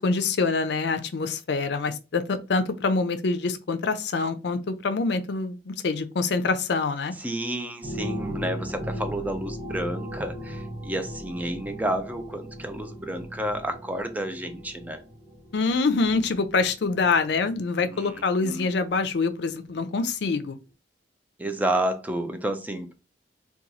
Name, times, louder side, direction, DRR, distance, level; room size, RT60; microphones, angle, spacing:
voice 1, 0.0-7.1 15.5-20.6, left 4 dB, 65° left, 0.4 m, -25 dB
voice 2, 7.2-15.0 17.8-18.7 21.4-22.9, right 1 dB, 10° right, 0.4 m, -30 dB
sound 1, 7.8-18.4 18.9-19.0, equal, 30° right, 1.1 m, -38 dB
2.9 x 2.3 x 3.8 m
head